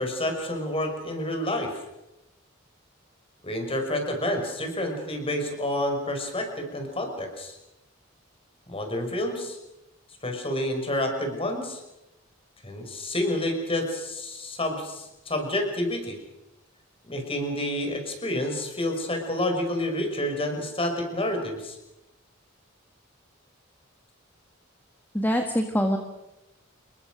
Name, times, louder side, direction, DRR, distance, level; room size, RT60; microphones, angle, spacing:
voice 1, 0.0-1.8 3.4-7.6 8.7-9.6 10.2-11.8 12.6-16.2 17.1-21.8, left 1 dB, 30° left, 4 dB, 6.0 m, -29 dB
voice 2, 25.1-26.0, equal, 10° left, 4 dB, 1.8 m, -24 dB
28.0 x 22.5 x 6.5 m, 0.94 s
head